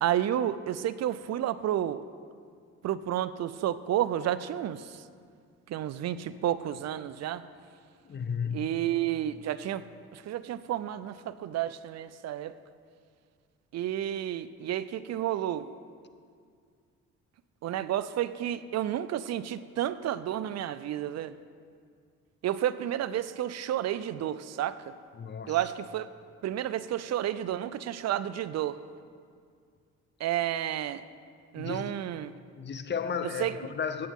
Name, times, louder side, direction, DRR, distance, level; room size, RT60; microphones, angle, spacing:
voice 1, 0.0-2.0 2.8-5.0 5.7-7.4 8.5-9.8 10.1-12.5 13.7-15.7 17.6-21.3 22.4-24.9 25.5-26.1 26.4-28.8 30.2-31.0 31.5-32.3 33.4-33.5, right 11 dB, 60° right, 15 dB, 0.5 m, -31 dB
voice 2, 8.0-8.8 25.1-25.6 31.5-31.9 32.5-34.1, left 6 dB, 35° left, 10 dB, 0.7 m, -34 dB
16.0 x 8.1 x 3.6 m, 2.1 s
cardioid pair, 90°, 30 cm